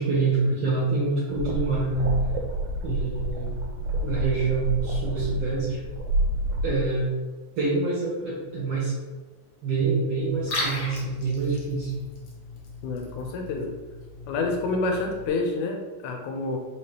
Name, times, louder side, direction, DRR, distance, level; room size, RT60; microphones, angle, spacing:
voice 1, 0.0-2.1 2.8-3.6 4.0-5.8 6.6-7.1 7.6-8.9 9.6-11.9, right 3 dB, 65° right, -8 dB, 1.9 m, -26 dB
sound 1, 1.3-6.9, right 1 dB, 85° right, 2.1 m, -28 dB
Liquid, 10.3-15.3, left 1 dB, 65° left, 1.7 m, -37 dB
voice 2, 12.8-13.7 14.3-16.6, left 3 dB, 90° left, 2 dB, 2.1 m, -28 dB
4.9 x 2.9 x 3.3 m, 1.3 s
omnidirectional pair, 3.5 m